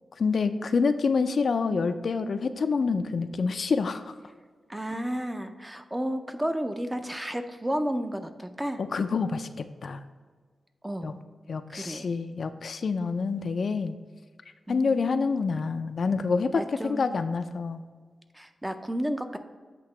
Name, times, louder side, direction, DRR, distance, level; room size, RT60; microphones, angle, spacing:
voice 1, 0.2-4.1 8.8-10.0 11.0-11.1 11.5-14.0 14.7-17.8, left 4 dB, 55° left, 9 dB, 0.3 m, -27 dB
voice 2, 4.7-8.8 10.8-11.2 11.7-12.1 14.7-15.0 16.6-17.3 18.3-19.4, equal, 10° right, 8 dB, 0.4 m, -32 dB
8.3 x 2.9 x 5.8 m, 1.5 s
wide cardioid pair, 130°, 0 cm